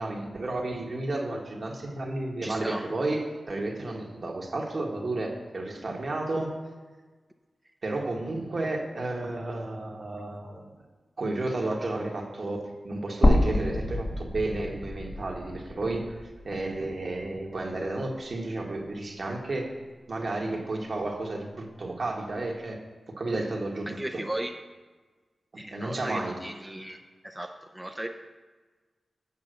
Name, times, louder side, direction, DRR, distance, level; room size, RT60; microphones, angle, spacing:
voice 1, 0.0-6.5 7.8-10.6 11.2-16.2 16.4-19.7 20.1-22.8 23.1-24.2 25.7-26.4, right 2 dB, 60° right, 0 dB, 1.6 m, -32 dB
voice 2, 2.4-2.8 23.9-24.5 25.6-27.0 27.2-27.5 27.7-28.1, right 1 dB, 10° right, 3 dB, 0.6 m, -35 dB
sound 1, 13.2-17.4 17.8-17.9 19.3-19.4, left 1 dB, 30° left, 1.2 m, -27 dB
8.4 x 5.7 x 6.5 m, 1.3 s
cardioid pair, 60°, 0 cm